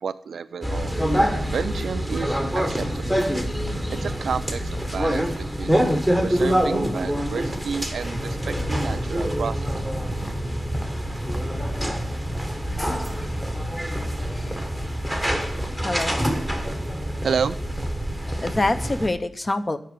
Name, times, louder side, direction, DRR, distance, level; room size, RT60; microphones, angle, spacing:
voice 1, 0.0-3.1 4.0-5.8 6.2-9.7 17.2-17.6, right 6 dB, 70° right, 12 dB, 0.3 m, -30 dB
sound 1, 0.6-19.1, equal, 5° left, 1.1 m, -26 dB
voice 2, 15.8-16.2 18.4-19.8, left 2 dB, 25° left, 11 dB, 0.6 m, -25 dB
8.0 x 5.9 x 7.9 m, 0.71 s
wide cardioid pair, 130°, 0 cm